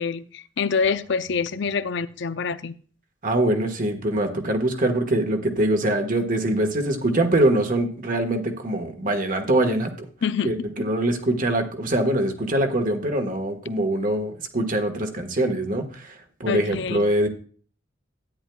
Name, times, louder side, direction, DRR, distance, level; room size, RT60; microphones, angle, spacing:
voice 1, 0.0-2.8 10.2-10.5 16.5-17.0, left 5 dB, 65° left, 0.6 m, -26 dB
voice 2, 3.2-10.1 10.4-17.3, right 1 dB, 45° right, 1.5 m, -23 dB
13.0 x 9.9 x 2.3 m
head